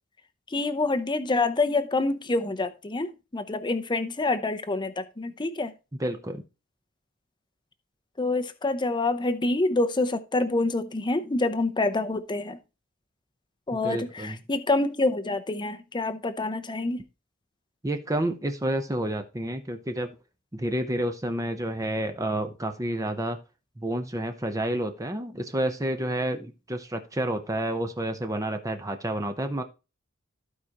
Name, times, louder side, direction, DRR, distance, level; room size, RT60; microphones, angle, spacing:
voice 1, 0.5-5.7 8.2-12.6 13.7-17.0, left 2 dB, 20° left, 0.7 m, -27 dB
voice 2, 6.0-6.4 13.8-14.4 17.8-20.2 20.5-23.4 23.8-29.6, right 1 dB, 15° right, 0.8 m, -29 dB
15.0 x 4.9 x 2.9 m
head